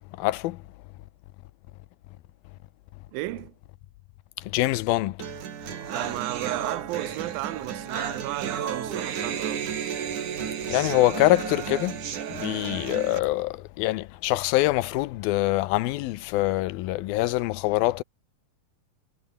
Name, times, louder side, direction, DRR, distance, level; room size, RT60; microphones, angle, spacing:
voice 1, 0.2-0.6 4.4-5.2 10.7-12.0 12.3-18.0, left 17 dB, 85° left, 2.7 m, -24 dB
voice 2, 3.1-3.5 5.9-9.7, right 18 dB, 85° right, 2.5 m, -34 dB
sound 1, 5.2-13.2, right 8 dB, 60° right, 3.7 m, -32 dB
omnidirectional pair, 4.1 m